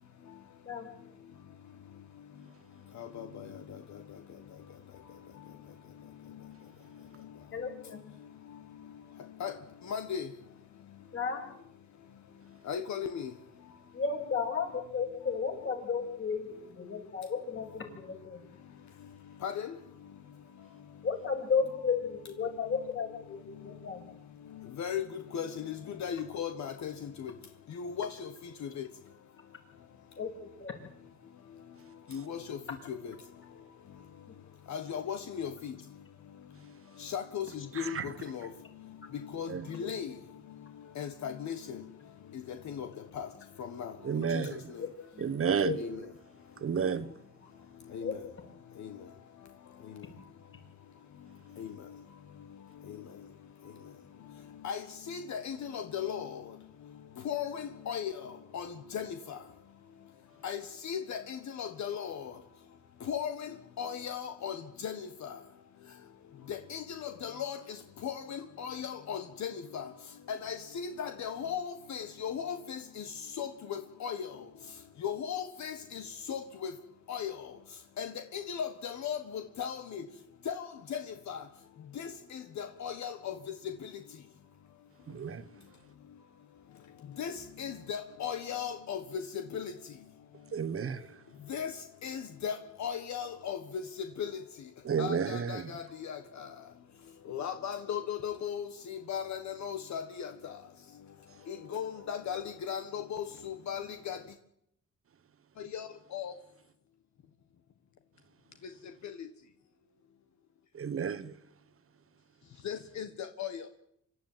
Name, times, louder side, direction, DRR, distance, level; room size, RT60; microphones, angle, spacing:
voice 1, 7.5-8.1 11.1-11.5 13.9-18.4 21.0-24.0 30.2-30.7 34.3-34.4 34.7-34.8 39.8-39.9 44.8-44.9 45.1-45.3 45.6-45.8 48.0-48.2, left 5 dB, 45° left, 6.8 m, -34 dB
voice 2, 9.9-10.3 12.7-13.3 19.4-19.7 24.8-25.1 25.3-26.9 27.2-27.3 27.8-28.3 28.8-28.9 32.1-32.6 32.9-33.0 34.7-35.7 37.0-37.5 37.8-38.5 39.3-40.1 41.0-41.5 42.7-42.9 43.2-43.3 43.8-43.9 44.3-44.4 45.8-45.9 47.9-48.1 51.6-51.7 54.6-54.8 55.1-56.4 57.2-58.1 58.5-59.1 60.4-62.2 63.1-63.5 63.8-64.6 64.8-65.3 66.5-67.6 68.0-69.9 70.3-73.0 73.4-74.3 75.0-76.0 76.3-76.7 77.1-77.3 78.0-80.0 80.5-80.6 80.9-81.0 81.3-81.4 82.0-83.3 87.2-87.3 87.6-89.2 89.5-89.7 91.5-91.7 92.0-92.5 92.8-93.6 94.2-94.3 95.0-96.2 97.3-100.3 101.5-104.2 105.7-105.9 106.1-106.3 112.6-113.1 113.4-113.5, left 8 dB, 65° left, 1.7 m, -36 dB
voice 3, 37.7-38.1 39.5-39.7 44.0-44.7 45.2-45.8 46.6-47.1 85.1-85.5 90.5-91.2 94.8-95.7 110.7-111.3, right 6 dB, 45° right, 1.3 m, -32 dB
25.5 x 13.0 x 9.2 m
cardioid pair, 90°, 30 cm